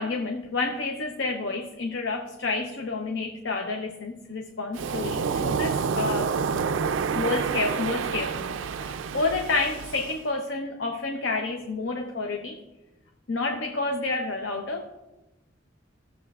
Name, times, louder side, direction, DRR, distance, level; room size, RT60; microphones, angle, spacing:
voice 1, 0.0-6.3 7.1-12.6 13.3-15.0, left 3 dB, 65° left, 2 dB, 0.8 m, -29 dB
Waves surf, 4.7-10.2, right 6 dB, 80° right, 0.4 m, -28 dB
16.5 x 7.2 x 2.4 m, 1.0 s
head